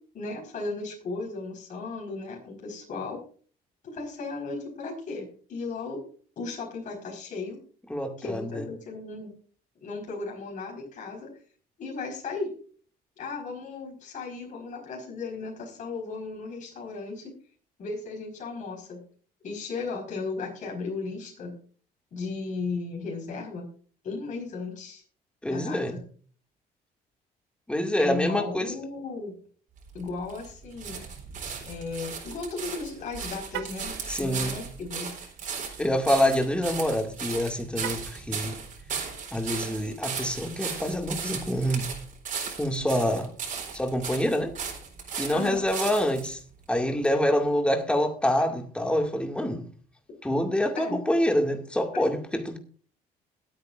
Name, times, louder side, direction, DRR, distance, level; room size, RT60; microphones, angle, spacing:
voice 1, 0.1-3.2 3.8-6.0 6.4-7.6 8.2-9.3 9.8-11.3 11.8-12.5 13.2-17.3 17.8-19.0 19.4-21.5 22.1-23.6 24.0-25.0 25.4-26.0 28.0-29.4 29.9-31.1 31.6-35.1 45.3-45.6 50.8-51.0 51.9-52.0, left 4 dB, 50° left, 5.0 m, -35 dB
voice 2, 7.9-8.7 25.4-26.0 27.7-28.7 34.1-34.6 35.8-38.6 39.3-41.9 42.6-43.3 43.7-44.5 45.2-46.4 46.7-49.6 50.2-52.6, equal, 5° left, 2.2 m, -26 dB
sound 1, 29.8-46.3 47.0-47.1, right 6 dB, 50° right, 4.1 m, -36 dB
Car, 33.4-33.9 37.7-38.3, right 13 dB, 85° right, 1.0 m, -37 dB
21.0 x 8.9 x 2.6 m
cardioid pair, 110°, 17 cm